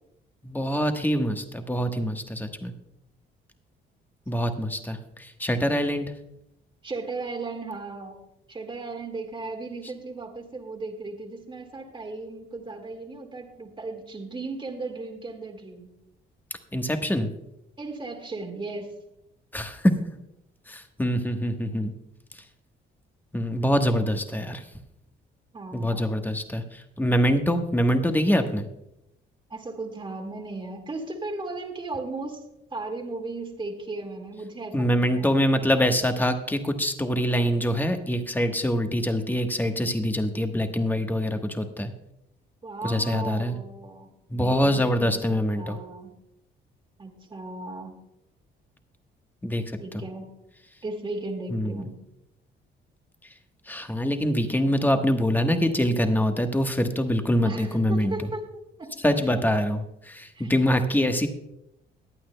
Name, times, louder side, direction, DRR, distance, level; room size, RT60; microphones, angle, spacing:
voice 1, 0.4-2.7 4.3-6.1 16.7-17.3 19.5-19.9 20.7-21.9 23.3-24.6 25.7-28.6 34.7-41.9 42.8-43.6 44.3-45.8 49.4-49.6 49.9-50.0 51.5-51.8 53.7-58.3 59.0-61.3, equal, 10° left, 6 dB, 1.2 m, -24 dB
voice 2, 6.8-8.2 8.5-15.9 17.8-19.0 25.5-26.2 29.5-32.4 32.7-35.4 42.6-46.2 47.0-48.0 49.8-50.3 50.8-52.0 57.4-58.9 60.3-60.5, right 3 dB, 25° right, 1 dB, 1.8 m, -36 dB
21.5 x 8.7 x 2.2 m, 0.84 s
cardioid pair, 90°, 20 cm